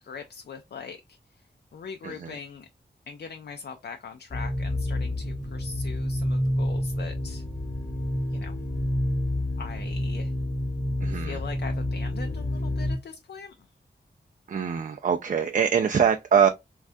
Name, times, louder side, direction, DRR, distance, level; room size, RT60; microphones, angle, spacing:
voice 1, 0.0-1.2 1.7-2.7 3.1-7.4 8.3-8.6 9.6-10.3 11.1-13.7, left 5 dB, 65° left, 0.4 m, -41 dB
voice 2, 2.0-2.4 11.0-11.4 14.5-16.5, right 7 dB, 45° right, 0.4 m, -23 dB
sound 1, 4.3-13.0, left 1 dB, 20° left, 0.9 m, -29 dB
3.3 x 2.3 x 2.5 m
wide cardioid pair, 70°, 18 cm